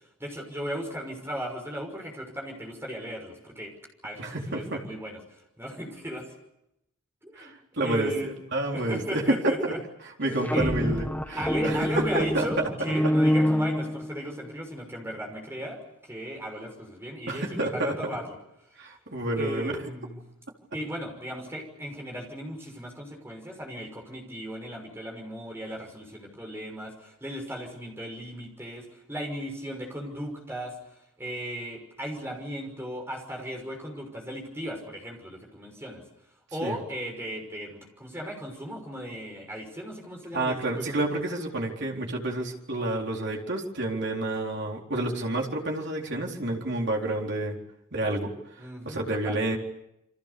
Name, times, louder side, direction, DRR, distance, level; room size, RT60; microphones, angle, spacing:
voice 1, 0.2-3.7 4.0-6.3 7.2-7.5 7.8-8.3 8.7-9.8 10.2-10.7 11.4-18.4 18.7-18.8 19.4-20.2 20.7-36.0 36.5-41.2 48.6-49.4, equal, 10° right, 2 dB, 6.0 m, -36 dB
voice 2, 4.2-4.8 7.4-8.1 8.5-9.5 10.2-12.6 17.3-17.9 18.8-19.7 36.6-36.8 40.3-47.6 47.9-48.3 48.8-49.6, right 2 dB, 50° right, 0 dB, 4.1 m, -29 dB
sound 1, 10.2-14.5, equal, 5° left, 1.5 m, -26 dB
29.5 x 24.5 x 6.9 m, 0.82 s
head